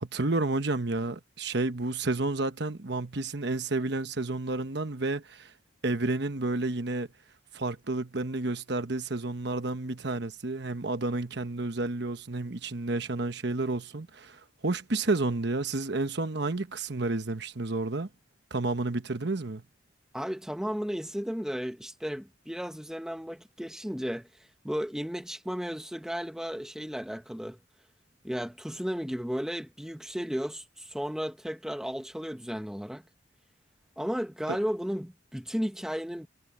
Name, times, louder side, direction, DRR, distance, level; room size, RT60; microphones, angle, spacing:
voice 1, 0.0-5.5 5.8-7.1 7.5-18.1 18.5-19.6 34.5-34.6, right 2 dB, 60° right, 1.1 m, -30 dB
voice 2, 20.1-24.3 24.6-27.6 28.2-33.0 34.0-36.3, equal, 5° right, 1.0 m, -34 dB
head